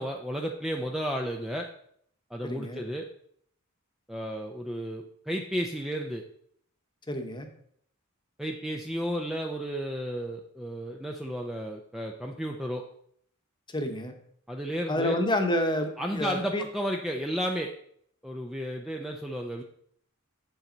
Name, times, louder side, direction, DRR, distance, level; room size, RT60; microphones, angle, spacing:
voice 1, 0.0-1.7 2.3-3.1 4.1-6.2 8.4-12.8 14.5-15.2 16.0-17.7 18.2-19.6, equal, ahead, 1 dB, 0.5 m, -33 dB
voice 2, 2.4-2.8 7.1-7.5 13.7-14.1 14.9-16.6, left 1 dB, 20° left, 5 dB, 1.1 m, -29 dB
8.0 x 7.4 x 3.9 m, 0.66 s
head